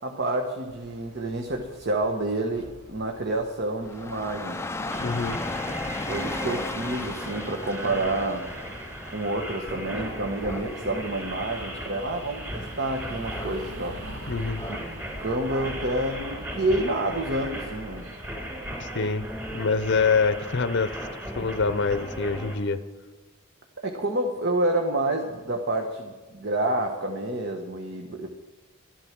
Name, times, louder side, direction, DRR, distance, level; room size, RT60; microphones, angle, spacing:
voice 1, 0.0-4.6 6.0-8.5 9.0-14.0 14.7-14.8 15.2-18.1 23.8-28.3, right 2 dB, 50° right, 3 dB, 1.2 m, -28 dB
sound 1, 0.7-19.0, equal, 70° right, 1.8 m, -46 dB
Dog / Rain, 3.8-16.0, left 2 dB, 10° left, 0.4 m, -38 dB
sound 2, 4.9-22.5, equal, 10° right, 3.5 m, -37 dB
voice 2, 5.0-5.4 14.3-14.6 18.8-19.3 19.5-20.9 21.4-22.8, left 4 dB, 50° left, 11 dB, 0.7 m, -25 dB
13.0 x 11.5 x 6.0 m, 1.2 s
head